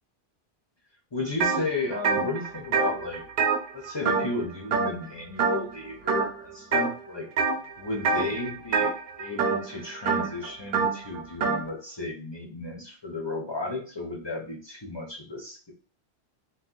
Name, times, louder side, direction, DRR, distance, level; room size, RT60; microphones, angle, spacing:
voice 1, 1.1-3.2 3.7-7.3 7.8-8.9 9.2-15.7, left 2 dB, 30° left, -2 dB, 0.5 m, -33 dB
sound 1, 1.4-1.6 1.9-4.4 4.7-5.1 5.4-5.8 6.1-6.9 7.4-7.7 8.0-11.6, right 5 dB, 60° right, 0.6 m, -26 dB
2.5 x 2.3 x 3.7 m, 0.40 s
omnidirectional pair, 1.2 m